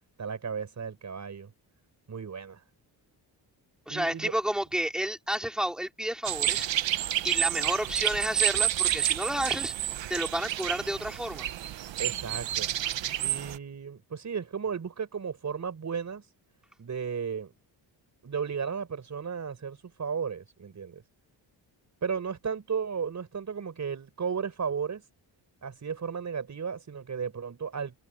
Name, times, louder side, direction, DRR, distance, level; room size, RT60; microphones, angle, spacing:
voice 1, 0.2-1.5 2.1-2.6 3.9-4.3 12.0-12.7 13.2-16.3 16.8-17.5 18.2-21.0 22.0-25.1 25.6-28.0, right 6 dB, 40° right, 5.4 m, -34 dB
voice 2, 3.9-6.7 7.2-9.7 10.1-11.5, right 1 dB, ahead, 3.8 m, -31 dB
sound 1, 6.2-13.6, right 12 dB, 80° right, 1.2 m, -29 dB
wide cardioid pair, 140°, 44 cm